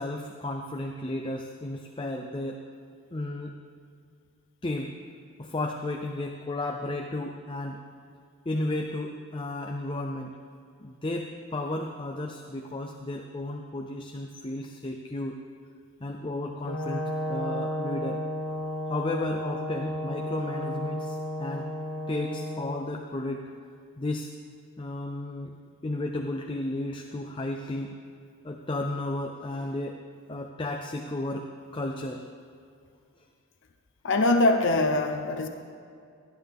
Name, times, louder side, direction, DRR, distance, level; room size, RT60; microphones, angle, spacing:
voice 1, 0.0-2.6 3.1-3.5 4.6-4.9 5.4-7.8 8.5-10.3 10.8-15.4 16.0-18.2 18.9-21.7 22.1-23.4 24.0-24.3 24.8-25.5 25.8-27.9 28.4-30.0 30.3-31.5 31.7-32.2, left 2 dB, 25° left, 3 dB, 0.5 m, -33 dB
Brass instrument, 16.6-22.8, left 1 dB, 85° left, 1.0 m, -33 dB
voice 2, 34.0-35.5, left 2 dB, 55° left, 5 dB, 0.7 m, -23 dB
17.5 x 10.5 x 3.6 m, 2.4 s
head